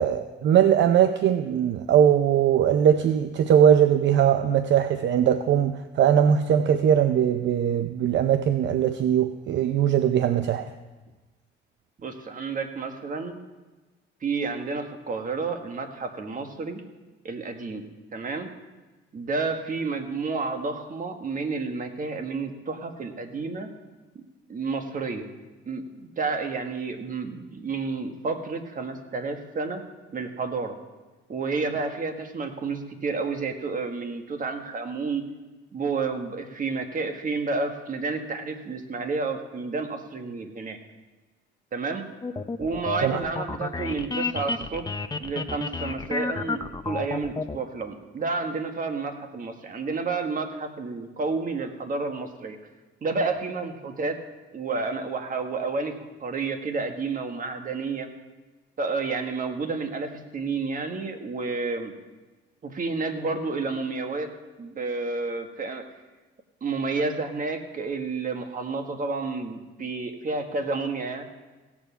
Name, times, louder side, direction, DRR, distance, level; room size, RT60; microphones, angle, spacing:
voice 1, 0.0-10.7 43.0-43.2, right 9 dB, 65° right, 0.6 m, -20 dB
voice 2, 12.0-13.4 14.2-16.8 17.2-17.9 18.1-18.5 19.1-23.7 24.1-24.2 24.5-25.3 25.6-29.8 30.1-30.7 31.3-35.2 35.7-40.8 41.7-42.0 42.6-44.8 45.2-52.6 53.0-54.2 54.5-55.9 56.2-58.1 58.8-61.9 62.6-64.3 64.6-65.8 66.6-71.2, right 4 dB, 45° right, 1.6 m, -30 dB
sound 1, 42.2-47.6, left 4 dB, 20° left, 0.6 m, -31 dB
16.5 x 7.3 x 5.7 m
cardioid pair, 90°, 20 cm